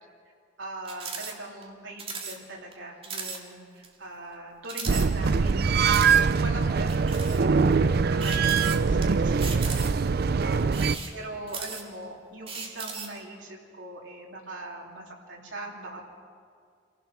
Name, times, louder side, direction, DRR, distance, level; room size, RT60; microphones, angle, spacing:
voice 1, 0.6-16.0, right 2 dB, 75° right, -2 dB, 3.3 m, -41 dB
sound 1, 0.8-1.3 1.6-1.7 2.0-2.4 2.7-2.8 3.0-3.4 3.8-3.9 4.6-5.5 5.9-6.2 6.9-7.4 8.2-9.0 9.4-10.1 10.6-12.0 12.5-13.2, right 5 dB, 30° right, 2.0 m, -37 dB
sound 2, 4.9-11.0, right 5 dB, 55° right, 0.4 m, -23 dB
26.5 x 15.5 x 6.2 m, 2.2 s
head